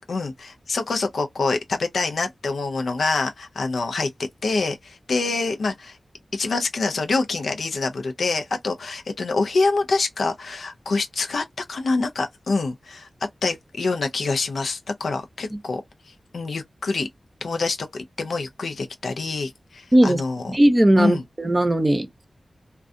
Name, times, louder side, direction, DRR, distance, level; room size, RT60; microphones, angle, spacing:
voice 1, 0.0-4.1 4.4-6.0 6.3-13.1 13.4-15.8 16.3-17.1 17.4-20.5 21.0-21.2, left 3 dB, 90° left, 0.5 m, -26 dB
voice 2, 20.5-22.2, right 1 dB, 25° right, 0.6 m, -18 dB
2.4 x 2.2 x 2.5 m
wide cardioid pair, 70°, 0 cm